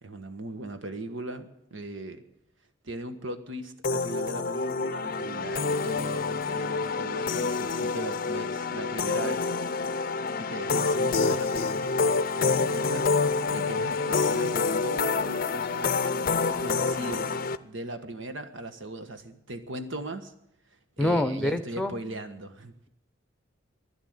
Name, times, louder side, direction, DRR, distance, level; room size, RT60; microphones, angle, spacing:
voice 1, 0.0-2.2 2.8-9.5 10.4-13.1 13.5-16.1 16.6-20.3 21.0-22.7, right 1 dB, 80° right, 9 dB, 1.5 m, -38 dB
sound 1, 3.8-17.6, left 4 dB, 45° left, 0.5 m, -27 dB
voice 2, 21.0-21.9, left 1 dB, 5° left, 11 dB, 0.8 m, -26 dB
11.5 x 11.0 x 9.6 m, 0.77 s
head